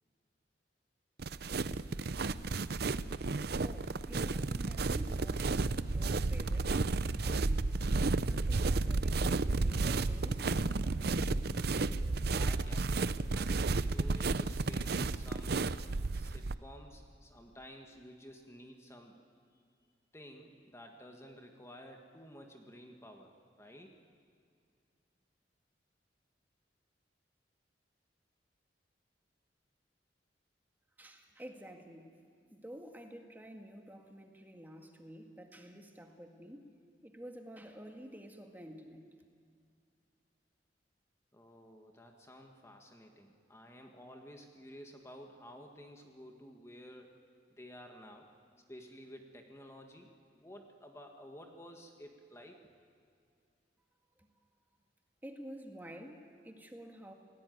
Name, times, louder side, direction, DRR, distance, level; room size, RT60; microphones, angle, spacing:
sound 1, 1.2-16.6, right 3 dB, 60° right, 0.7 m, -32 dB
voice 1, 3.6-7.8 8.2-10.5 31.0-32.1 32.5-36.7 37.0-39.0 55.2-57.1, equal, 10° right, 3 dB, 2.0 m, -50 dB
sound 2, 7.8-11.9, equal, 55° left, 5.4 m, -50 dB
voice 2, 12.3-15.7 16.1-19.2 20.1-23.9 41.3-47.1 47.6-48.3 48.7-52.6, equal, 15° left, 3 dB, 1.7 m, -53 dB
29.5 x 18.5 x 9.4 m, 2.3 s
head